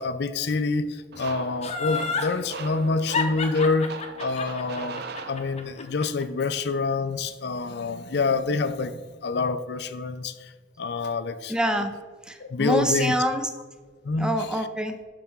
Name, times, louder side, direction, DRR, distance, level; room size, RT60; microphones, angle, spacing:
voice 1, 0.0-3.9 4.2-10.5 10.8-11.5 12.4-13.2 14.0-14.3, left 3 dB, 60° left, 12 dB, 0.5 m, -27 dB
sound 1, 1.1-5.9, right 4 dB, 60° right, 0.6 m, -39 dB
Laughter, 1.6-2.3 3.1-6.2 6.6-6.7, left 5 dB, 35° left, 0.8 m, -29 dB
voice 2, 11.5-11.9 12.3-13.4 14.2-15.0, equal, 5° right, 6 dB, 0.5 m, -25 dB
11.5 x 4.3 x 3.6 m, 1.4 s
head